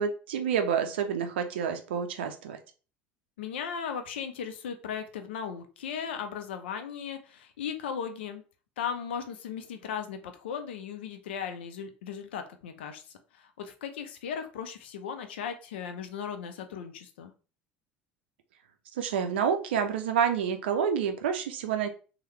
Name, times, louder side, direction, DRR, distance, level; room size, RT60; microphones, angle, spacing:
voice 1, 0.0-2.6 19.0-21.9, right 7 dB, 70° right, 6 dB, 0.4 m, -28 dB
voice 2, 3.4-8.4 8.8-13.0 13.3-17.3, left 7 dB, 70° left, 7 dB, 0.4 m, -37 dB
3.0 x 2.1 x 3.0 m, 0.36 s
figure-of-eight pair, 65°, 6 cm